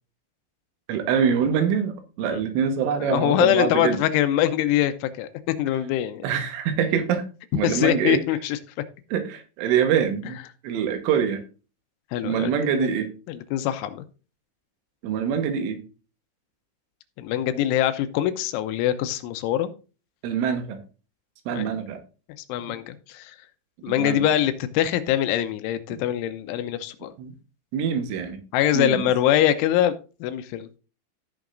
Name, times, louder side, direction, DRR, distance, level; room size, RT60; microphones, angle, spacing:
voice 1, 0.9-4.0 5.7-5.8 6.2-7.3 7.5-8.3 9.1-10.4 10.6-11.4 12.2-13.1 15.0-15.8 20.2-20.8 21.5-22.0 23.9-24.4 25.9-26.0 27.2-27.3 27.7-28.4 28.7-29.1, right 7 dB, 85° right, 7 dB, 3.7 m, -25 dB
voice 2, 3.0-6.2 7.6-8.6 12.1-12.9 13.3-14.0 17.2-19.7 21.5-21.8 22.5-23.4 23.8-27.1 28.5-29.9 30.2-30.7, left 12 dB, 85° left, 10 dB, 3.2 m, -23 dB
16.0 x 6.3 x 2.5 m, 0.34 s
omnidirectional pair, 5.5 m